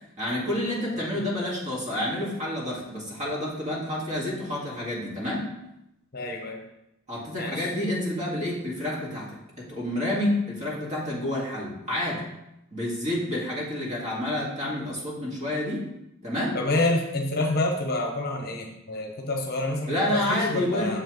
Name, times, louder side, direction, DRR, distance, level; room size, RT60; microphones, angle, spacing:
voice 1, 0.2-5.5 7.1-12.2 12.7-15.9 16.2-16.6 19.9-20.9, left 1 dB, 35° right, -4 dB, 1.8 m, -29 dB
voice 2, 6.1-6.7 7.4-7.7 16.5-21.0, left 2 dB, 45° left, 2 dB, 0.9 m, -28 dB
6.8 x 5.6 x 3.0 m, 0.87 s
head